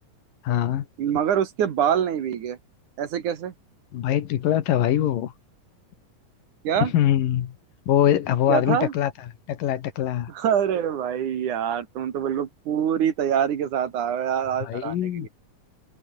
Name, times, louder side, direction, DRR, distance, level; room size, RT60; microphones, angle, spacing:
voice 1, 0.4-0.9 3.9-5.3 6.8-7.6 7.9-9.1 9.5-10.3 14.6-15.3, left 11 dB, 80° left, 3.2 m, -23 dB
voice 2, 1.0-2.6 3.0-3.5 6.6-6.9 8.5-8.9 10.3-15.3, right 9 dB, 65° right, 3.2 m, -25 dB
omnidirectional pair, 3.9 m